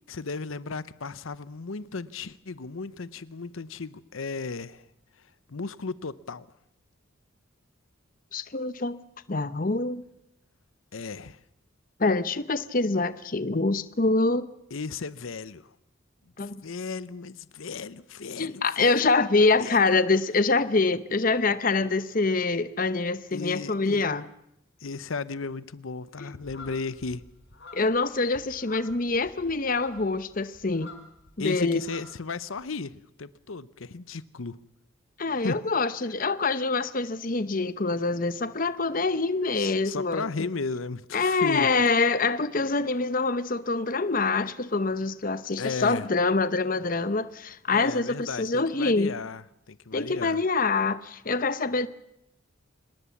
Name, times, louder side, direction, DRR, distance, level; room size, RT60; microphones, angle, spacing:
voice 1, 0.1-4.8 5.5-6.5 10.9-11.4 14.7-15.7 16.4-18.9 19.6-19.8 23.3-24.1 24.8-27.2 31.4-34.6 35.4-35.6 39.6-41.7 45.6-46.1 47.7-50.4, left 4 dB, 80° left, 0.8 m, -35 dB
voice 2, 8.3-9.0 9.3-10.0 12.0-14.5 16.4-16.6 18.4-24.2 26.2-26.3 27.7-30.9 31.4-31.8 35.2-40.5 41.1-49.1 49.9-51.9, left 3 dB, 40° left, 0.8 m, -25 dB
sound 1, 26.4-31.4 31.6-32.6, left 3 dB, 60° left, 4.8 m, -48 dB
26.0 x 20.0 x 7.2 m
head